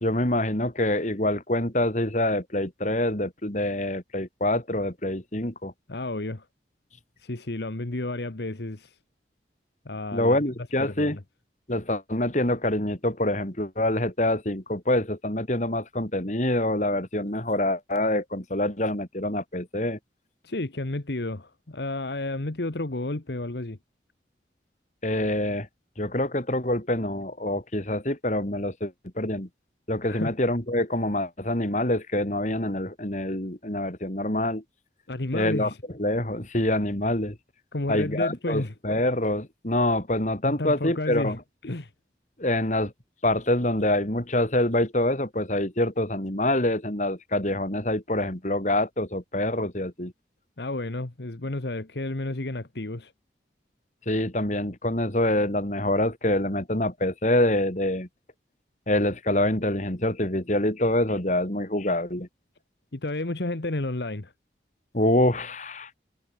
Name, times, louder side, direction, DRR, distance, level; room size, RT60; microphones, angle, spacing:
voice 1, 0.0-5.7 10.1-11.2 11.7-20.0 25.0-25.7 26.0-29.5 29.9-34.6 35.3-35.7 36.0-37.4 37.9-41.4 42.4-42.9 43.2-50.1 54.1-58.1 58.9-62.3 64.9-65.9, left 1 dB, 40° left, 3.4 m, -26 dB
voice 2, 5.9-6.4 7.2-8.9 9.8-10.4 10.8-11.2 20.4-23.8 30.1-30.3 35.1-35.8 37.7-38.7 40.4-41.4 41.6-41.9 50.6-53.1 62.9-64.3, left 2 dB, 70° left, 1.3 m, -31 dB
head